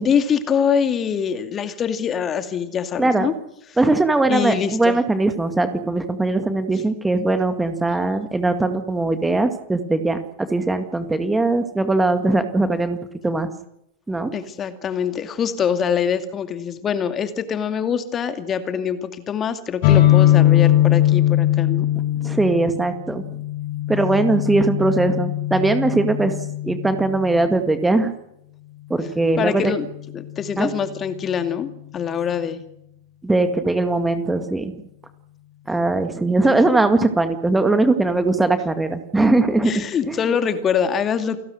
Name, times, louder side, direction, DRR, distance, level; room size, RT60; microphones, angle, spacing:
voice 1, 0.0-3.3 4.3-5.0 14.3-21.9 29.4-29.9 30.1-32.6 36.5-36.6 39.6-41.4, left 7 dB, 25° left, 9 dB, 2.3 m, -24 dB
voice 2, 3.8-13.0 13.2-13.5 14.1-14.3 22.2-23.2 23.9-26.4 26.6-28.1 28.9-29.7 30.6-30.7 33.2-34.7 35.7-40.2, right 2 dB, 10° right, 9 dB, 2.0 m, -20 dB
sound 1, 19.8-27.4, left 13 dB, 45° left, 6.0 m, -20 dB
29.0 x 19.0 x 6.5 m, 0.79 s
figure-of-eight pair, 90°, 0 cm